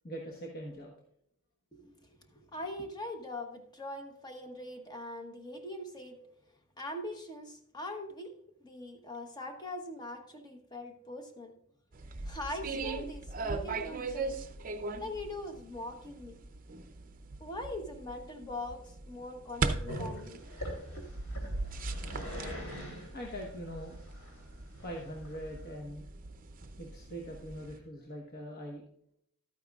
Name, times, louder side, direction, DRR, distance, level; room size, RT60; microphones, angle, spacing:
voice 1, 0.0-0.9 23.1-24.0 24.8-26.1 26.8-28.8, equal, 45° left, -1 dB, 1.2 m, -42 dB
voice 2, 1.7-6.2 6.8-8.3 8.6-11.5 12.2-14.4 15.0-16.4 17.4-20.4 21.0-21.1, left 1 dB, 20° left, 4 dB, 1.0 m, -42 dB
sound 1, 11.9-27.8, right 3 dB, 40° right, 0.6 m, -39 dB
Growling, 19.9-25.7, equal, 80° left, 3.3 m, -42 dB
12.5 x 9.1 x 2.4 m, 0.71 s
head